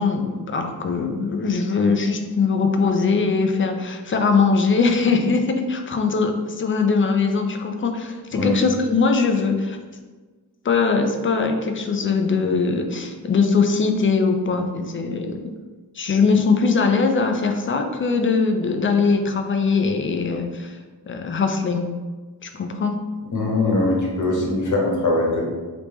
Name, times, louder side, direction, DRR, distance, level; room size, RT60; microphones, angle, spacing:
voice 1, 0.0-9.8 10.6-15.4 16.0-20.8 21.1-21.9 22.4-23.0, left 4 dB, 30° left, 5 dB, 0.4 m, -21 dB
voice 2, 23.3-25.4, left 2 dB, 50° left, -2 dB, 1.0 m, -21 dB
3.4 x 2.9 x 3.0 m, 1.3 s
wide cardioid pair, 100°, 40 cm